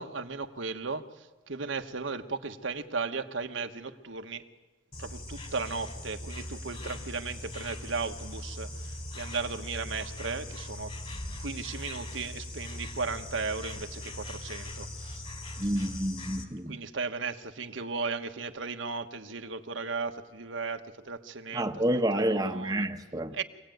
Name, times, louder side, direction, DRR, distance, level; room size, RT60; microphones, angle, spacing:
voice 1, 0.0-4.4 5.0-10.9 11.4-15.2 15.6-15.7 16.7-21.6 21.9-22.9 23.3-23.4, right 4 dB, 75° right, 1.3 m, -36 dB
Insect, 4.9-16.4, left 1 dB, 30° left, 2.8 m, -40 dB
voice 2, 15.6-16.8 21.5-23.4, right 1 dB, 20° right, 1.0 m, -29 dB
26.0 x 17.5 x 9.2 m
head